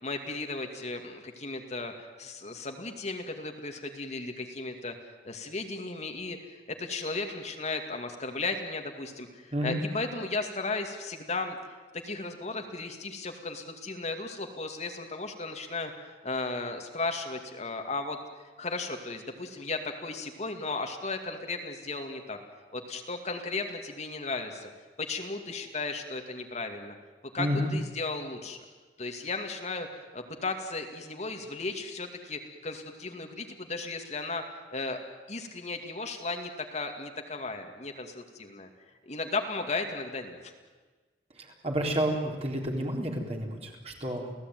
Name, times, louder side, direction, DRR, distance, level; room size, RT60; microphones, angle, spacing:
voice 1, 0.0-4.9 5.2-6.4 6.7-11.6 11.9-18.2 18.6-22.4 22.7-24.7 25.0-27.0 27.3-28.6 29.0-35.0 35.3-38.7 39.1-40.5, left 3 dB, 40° left, 4 dB, 2.3 m, -35 dB
voice 2, 9.5-9.8 27.4-27.7 41.4-44.3, equal, 35° right, 1 dB, 4.1 m, -30 dB
29.0 x 17.0 x 9.4 m, 1.3 s
head